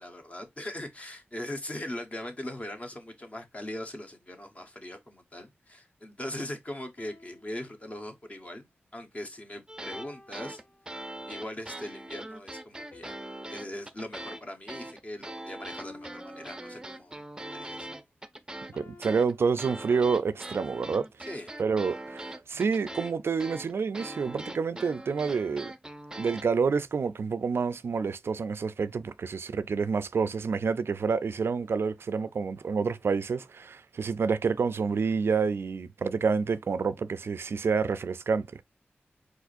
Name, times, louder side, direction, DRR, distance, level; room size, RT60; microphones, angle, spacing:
voice 1, 0.0-8.7 8.9-10.6 11.3-13.2 13.5-17.9 21.3-21.5, left 1 dB, 30° left, 1.2 m, -40 dB
sound 1, 7.0-8.4 9.9-11.3 12.9-15.3 15.8-17.3 18.7-20.3, left 2 dB, 50° left, 1.1 m, -54 dB
sound 2, 9.7-10.1 10.3-14.4 14.7-26.4, right 1 dB, 15° right, 0.6 m, -41 dB
voice 2, 18.7-21.0 21.6-25.7 26.2-38.6, right 5 dB, 75° right, 0.3 m, -28 dB
4.8 x 4.0 x 2.5 m
wide cardioid pair, 85°, 4 cm